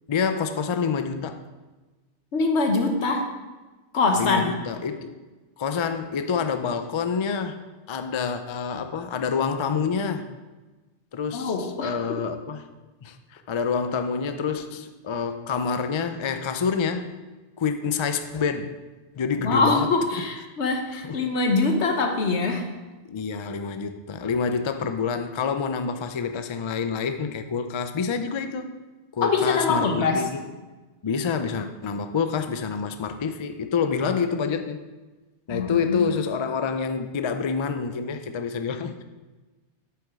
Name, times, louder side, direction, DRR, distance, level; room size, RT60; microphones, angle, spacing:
voice 1, 0.1-1.4 4.2-5.1 5.6-7.6 7.9-10.3 11.1-12.6 13.0-17.2 17.6-18.8 19.2-20.2 21.0-21.2 23.1-28.7 29.1-30.4 31.0-34.8 35.5-39.0, left 5 dB, 50° left, 9 dB, 0.3 m, -27 dB
voice 2, 2.3-3.3 3.9-4.5 11.3-12.2 19.4-22.7 29.2-30.2 35.5-36.1, left 3 dB, 75° left, 4 dB, 1.3 m, -23 dB
8.1 x 7.9 x 3.6 m, 1.2 s
omnidirectional pair, 1.2 m